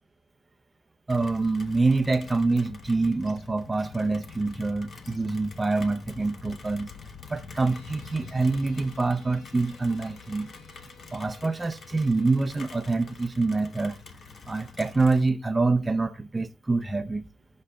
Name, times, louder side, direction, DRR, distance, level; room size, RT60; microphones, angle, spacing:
Rain, 1.1-15.3, left 4 dB, 45° left, 1.1 m, -45 dB
voice 1, 1.1-6.9 7.3-10.5 11.1-14.0 14.5-17.3, right 3 dB, 15° right, 0.7 m, -26 dB
sound 1, 7.6-12.9, left 2 dB, 60° left, 3.1 m, -57 dB
19.0 x 6.4 x 2.4 m
cardioid pair, 90°, 0 cm